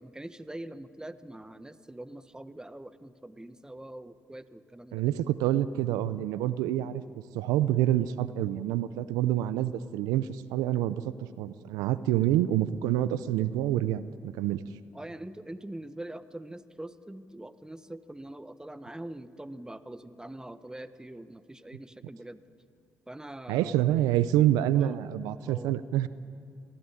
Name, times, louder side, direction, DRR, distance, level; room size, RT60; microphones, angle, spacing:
voice 1, 0.0-5.0 14.9-22.4 23.1-23.9 24.7-25.0 25.5-25.8, right 1 dB, 10° right, 13 dB, 1.2 m, -43 dB
voice 2, 4.9-7.0 7.3-11.0 11.4-14.6 23.5-26.1, right 13 dB, 85° right, 16 dB, 0.6 m, -27 dB
23.0 x 15.5 x 9.9 m, 2.5 s
hypercardioid pair, 50°, 6 cm